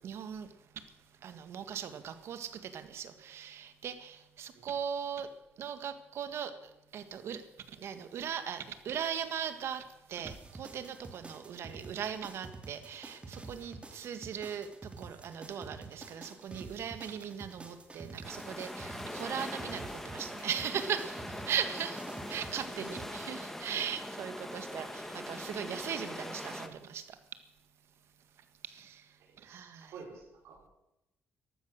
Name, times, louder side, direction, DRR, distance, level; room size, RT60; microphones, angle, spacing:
voice 1, 0.0-0.5 1.2-5.3 5.6-6.5 6.9-7.4 7.7-27.2 28.7-29.0 29.4-30.0, right 8 dB, 70° right, 10 dB, 1.7 m, -39 dB
sound 1, 10.2-23.0, right 3 dB, 25° right, 2.6 m, -48 dB
sound 2, 18.2-26.7, left 1 dB, 5° left, 1.7 m, -42 dB
voice 2, 22.7-23.2 29.3-30.7, right 4 dB, 85° right, 0 dB, 5.3 m, -51 dB
14.5 x 12.5 x 6.5 m, 0.87 s
cardioid pair, 90°, 5 cm